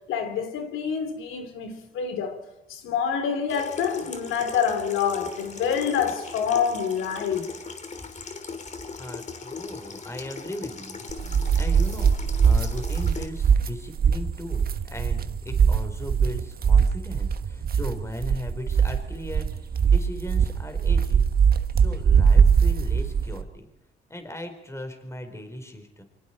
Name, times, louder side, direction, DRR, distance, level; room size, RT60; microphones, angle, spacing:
voice 1, 0.1-2.4 2.7-7.5, left 7 dB, 90° left, 3.6 m, -27 dB
Water tap faucet / Sink (filling or washing), 3.5-13.3, left 4 dB, 35° left, 3.2 m, -39 dB
voice 2, 9.0-21.3 21.8-23.7 24.1-26.0, left 1 dB, 15° left, 4.0 m, -38 dB
sound 1, 11.1-23.4, right 6 dB, 50° right, 1.5 m, -21 dB
28.0 x 24.5 x 4.4 m
cardioid pair, 90°, 20 cm